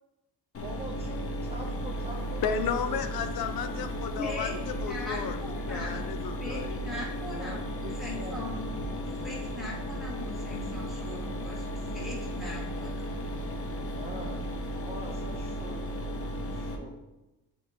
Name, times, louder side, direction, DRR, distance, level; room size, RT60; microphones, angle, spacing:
Mechanisms, 0.5-16.8, equal, 35° left, 0.8 m, -35 dB
voice 1, 0.6-3.0 7.3-8.4 13.9-16.2 16.5-17.0, right 2 dB, 15° right, 0 dB, 0.5 m, -44 dB
voice 2, 2.4-5.4 5.7-7.1, left 7 dB, 70° left, 9 dB, 0.6 m, -33 dB
voice 3, 4.2-6.1 6.4-8.9 9.2-11.6 11.9-13.0, left 1 dB, ahead, -6 dB, 1.7 m, -40 dB
8.3 x 4.6 x 2.8 m, 1.0 s
cardioid pair, 145°, 38 cm